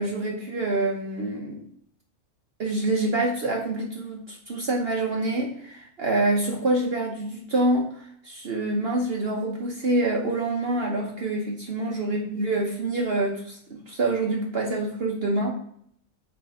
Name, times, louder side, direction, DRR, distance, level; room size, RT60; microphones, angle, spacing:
voice 1, 0.0-1.6 2.6-15.5, right 2 dB, 50° right, 0 dB, 1.1 m, -26 dB
9.1 x 3.4 x 4.2 m, 0.65 s
omnidirectional pair, 1.4 m